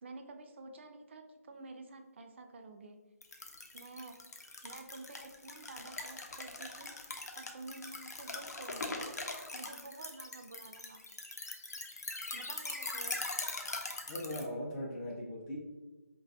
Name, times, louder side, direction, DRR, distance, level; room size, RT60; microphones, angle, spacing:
voice 1, 0.0-3.0 3.7-4.2 4.6-6.9 7.4-9.1 9.5-11.0 12.3-13.3, right 3 dB, 45° right, 5 dB, 0.4 m, -50 dB
sound 1, 3.2-14.4, left 2 dB, 85° left, 0.6 m, -42 dB
voice 2, 14.1-15.6, left 1 dB, 20° left, -4 dB, 0.5 m, -39 dB
4.5 x 2.3 x 2.7 m, 1.2 s
figure-of-eight pair, 150°, 9 cm